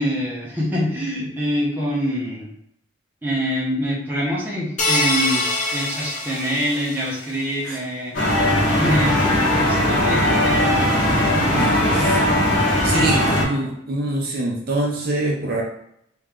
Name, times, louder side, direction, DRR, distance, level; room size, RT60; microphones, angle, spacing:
voice 1, 0.0-2.5 3.2-8.1 8.7-10.9, equal, 10° right, -5 dB, 0.9 m, -25 dB
sound 1, 4.8-7.3, left 2 dB, 35° left, 0.8 m, -24 dB
sound 2, 8.1-13.4, left 1 dB, 75° left, 1.4 m, -18 dB
voice 2, 11.5-12.2 12.8-15.6, right 2 dB, 50° right, -2 dB, 0.7 m, -24 dB
3.1 x 3.1 x 3.6 m, 0.75 s
head